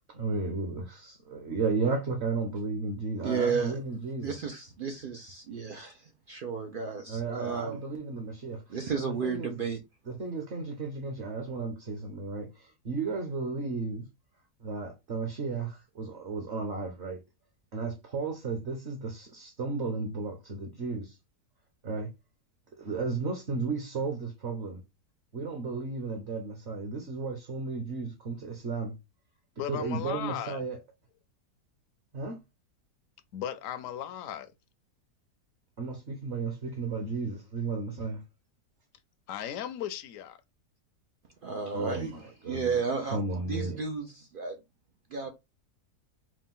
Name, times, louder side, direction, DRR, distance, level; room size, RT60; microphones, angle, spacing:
voice 1, 0.1-4.3 7.1-8.6 9.0-9.6 10.1-14.0 14.6-17.2 17.7-21.2 21.8-22.1 22.8-24.8 25.3-28.9 29.7-30.8 32.1-32.4 35.8-38.2 41.7-42.8 43.1-43.8, right 4 dB, 50° right, 1.0 m, -34 dB
voice 2, 3.2-3.8 4.2-7.8 8.7-9.8 41.4-42.1 42.5-44.6 45.1-45.3, right 5 dB, 85° right, 0.4 m, -33 dB
voice 3, 29.6-30.7 33.3-34.5 39.3-40.4, left 10 dB, 65° left, 0.9 m, -36 dB
4.9 x 2.2 x 3.7 m
omnidirectional pair, 1.7 m